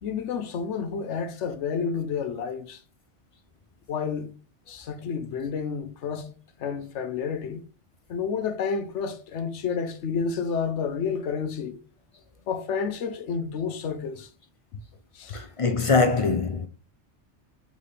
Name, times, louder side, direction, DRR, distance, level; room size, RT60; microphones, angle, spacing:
voice 1, 0.0-2.8 3.9-4.3 4.7-6.3 6.6-7.6 8.1-11.8 12.5-14.3 15.1-15.4, left 6 dB, 85° left, 1.0 m, -30 dB
voice 2, 15.3-16.7, left 4 dB, 45° left, 0.4 m, -23 dB
4.1 x 3.7 x 3.3 m
omnidirectional pair, 1.2 m